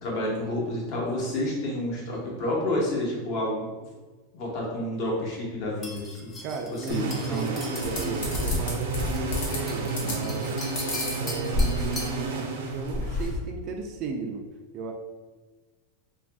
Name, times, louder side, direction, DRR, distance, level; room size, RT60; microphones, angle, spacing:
voice 1, 0.0-3.7 4.3-6.4 6.9-7.4, left 1 dB, 45° left, -3 dB, 1.1 m, -29 dB
sound 1, 5.8-12.2, left 2 dB, 15° left, 0.5 m, -40 dB
voice 2, 6.4-10.6 11.1-14.4 14.7-14.9, right 4 dB, 40° right, 3 dB, 0.4 m, -36 dB
sound 2, 6.9-13.4, right 3 dB, 85° right, 0.6 m, -31 dB
sound 3, 7.8-9.6 9.9-10.4 10.8-12.0 12.4-12.5 12.7-13.4, left 2 dB, 85° left, 1.2 m, -29 dB
3.0 x 2.5 x 3.4 m, 1.3 s
supercardioid pair, 155°, 0 cm